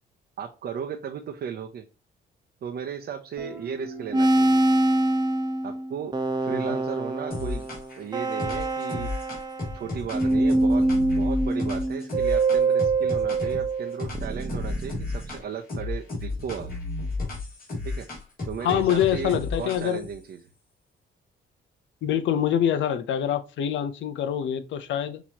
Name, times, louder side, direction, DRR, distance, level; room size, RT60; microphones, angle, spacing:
voice 1, 0.4-1.8 2.6-4.6 5.6-7.7 8.0-9.1 9.7-16.7 17.8-18.1 18.5-20.4, right 7 dB, 55° right, 0.7 m, -35 dB
Guitar, 3.4-7.0, right 3 dB, 5° right, 1.7 m, -44 dB
sound 1, 4.1-9.9 10.1-15.3, right 2 dB, 20° right, 0.9 m, -24 dB
sound 2, 7.3-8.0 8.4-13.7 14.0-15.4 15.7-20.1, left 3 dB, 45° left, 2.8 m, -33 dB
voice 2, 18.6-20.0 22.0-25.2, left 10 dB, 70° left, 0.7 m, -25 dB
6.0 x 3.0 x 2.9 m
cardioid pair, 90°, 20 cm